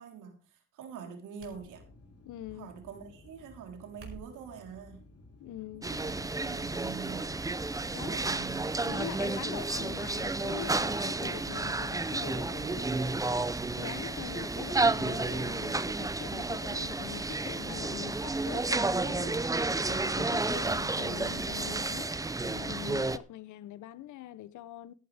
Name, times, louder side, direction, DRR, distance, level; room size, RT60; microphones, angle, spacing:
voice 1, 0.0-1.8 2.5-5.1 5.8-7.3 7.9-9.0, right 7 dB, 85° right, 3.8 m, -45 dB
sound 1, 1.4-2.2 3.8-4.5 5.3-5.7 6.1-6.3 7.2-7.4 7.7-7.8 9.7-9.9 10.3-10.4, right 4 dB, 45° right, 4.8 m, -51 dB
sound 2, 1.5-20.7, left 2 dB, 55° left, 2.9 m, -55 dB
voice 2, 2.2-2.7 5.4-5.9 7.9-8.2 8.8-13.3 13.8-19.4 19.9-22.1 22.4-24.9, left 13 dB, 80° left, 0.8 m, -43 dB
sound 3, 5.8-23.2, right 3 dB, 10° right, 0.6 m, -31 dB
14.0 x 11.0 x 3.4 m
cardioid pair, 90°, 30 cm